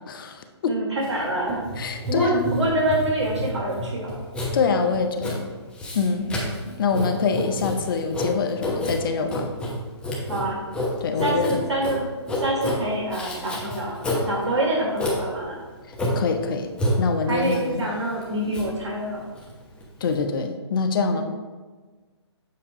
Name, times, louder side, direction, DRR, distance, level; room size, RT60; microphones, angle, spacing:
voice 1, 0.1-0.8 1.8-2.5 4.5-5.5 5.9-6.3 6.8-9.5 11.0-11.6 16.1-16.7 17.0-17.8 20.0-21.2, left 4 dB, 50° left, 6 dB, 0.7 m, -25 dB
voice 2, 0.7-1.6 2.1-4.2 6.2-6.5 10.3-10.6 11.2-12.1 12.4-14.0 14.3-15.6 17.3-19.2 21.1-21.2, right 1 dB, 80° right, -3 dB, 1.6 m, -26 dB
Writing, 1.0-20.1, left 1 dB, 5° left, 0.9 m, -30 dB
7.5 x 2.8 x 4.9 m, 1.4 s
figure-of-eight pair, 140°, 15 cm